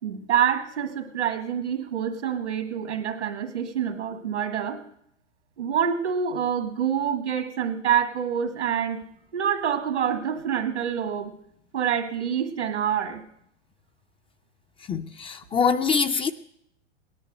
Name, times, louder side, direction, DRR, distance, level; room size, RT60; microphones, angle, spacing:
voice 1, 0.0-4.8 5.6-9.0 9.3-11.4 11.7-13.2, right 8 dB, 80° right, 2.1 m, -26 dB
voice 2, 14.9-16.3, left 6 dB, 15° left, 0.5 m, -24 dB
18.0 x 11.0 x 6.5 m
hypercardioid pair, 100°, 35 cm